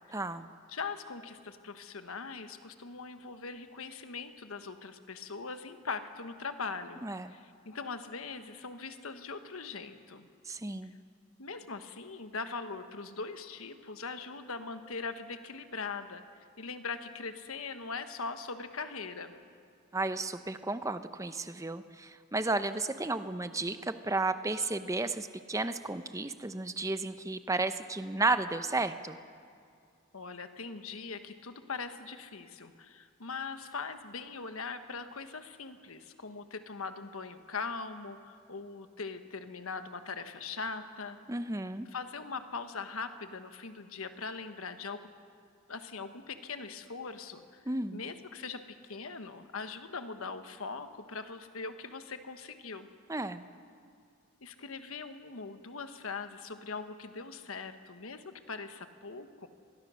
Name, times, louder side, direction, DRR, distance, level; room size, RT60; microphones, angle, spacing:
voice 1, 0.1-0.5 7.0-7.3 10.5-11.0 19.9-29.2 41.3-41.9 47.7-48.0 53.1-53.4, right 2 dB, 15° right, 11 dB, 0.6 m, -33 dB
voice 2, 0.7-10.3 11.4-16.2 16.6-19.4 30.1-41.2 41.9-45.0 45.7-47.6 47.9-52.9 54.4-59.5, left 4 dB, 85° left, 9 dB, 1.2 m, -41 dB
23.5 x 20.5 x 6.3 m, 2.2 s
head